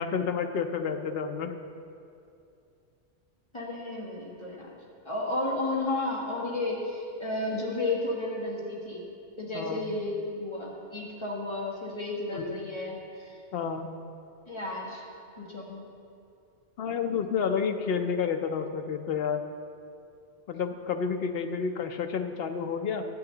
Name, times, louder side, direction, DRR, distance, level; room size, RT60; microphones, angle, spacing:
voice 1, 0.0-1.6 9.5-9.9 12.3-12.6 13.5-13.9 16.8-19.4 20.5-23.1, left 6 dB, 60° left, 7 dB, 0.7 m, -30 dB
voice 2, 3.5-4.8 5.0-9.0 9.4-13.4 14.5-15.0 15.4-15.8, left 2 dB, 25° left, -4 dB, 1.5 m, -32 dB
11.5 x 8.1 x 3.8 m, 2.5 s
omnidirectional pair, 1.2 m